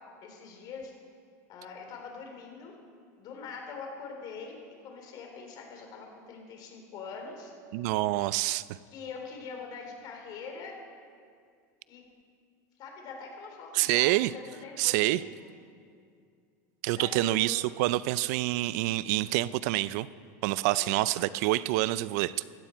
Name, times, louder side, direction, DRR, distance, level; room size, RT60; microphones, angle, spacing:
voice 1, 0.2-0.9 1.5-2.7 3.2-7.5 8.9-10.8 11.9-12.0 12.8-15.5 17.0-17.5 20.7-20.9, left 5 dB, 45° left, 1 dB, 3.7 m, -43 dB
voice 2, 7.7-8.6 13.7-14.3 14.8-15.2 16.8-20.1 20.4-22.4, right 17 dB, 65° right, 18 dB, 0.4 m, -27 dB
15.5 x 13.5 x 4.5 m, 2.2 s
supercardioid pair, 125°, 9 cm